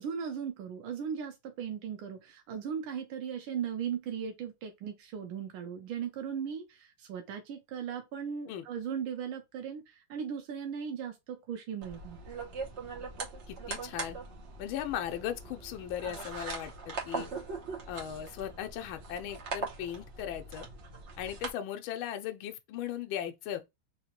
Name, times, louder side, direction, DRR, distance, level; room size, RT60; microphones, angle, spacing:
voice 1, 0.0-12.2, right 7 dB, 90° right, 1.5 m, -37 dB
sound 1, 11.8-21.5, right 4 dB, 45° right, 1.0 m, -41 dB
voice 2, 13.5-14.2 14.6-17.3 17.9-20.7 21.2-23.6, left 10 dB, 85° left, 1.4 m, -37 dB
3.9 x 2.8 x 2.9 m
omnidirectional pair, 2.2 m